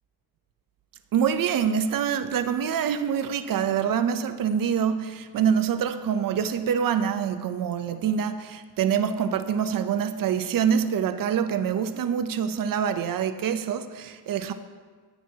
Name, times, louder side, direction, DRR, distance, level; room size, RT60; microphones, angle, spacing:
voice 1, 1.1-14.5, right 8 dB, 55° right, 9 dB, 0.6 m, -25 dB
15.0 x 9.0 x 2.8 m, 1.5 s
cardioid pair, 130°, 39 cm